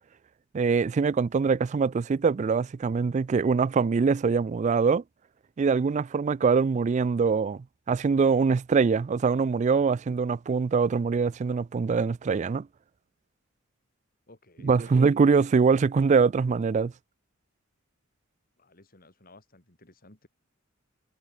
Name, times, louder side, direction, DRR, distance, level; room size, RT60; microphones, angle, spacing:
voice 1, 0.5-5.0 5.6-12.7 14.6-16.9, right 5 dB, 35° right, 0.3 m, -23 dB
voice 2, 14.3-15.1 18.6-20.3, left 2 dB, 45° left, 4.0 m, -54 dB
head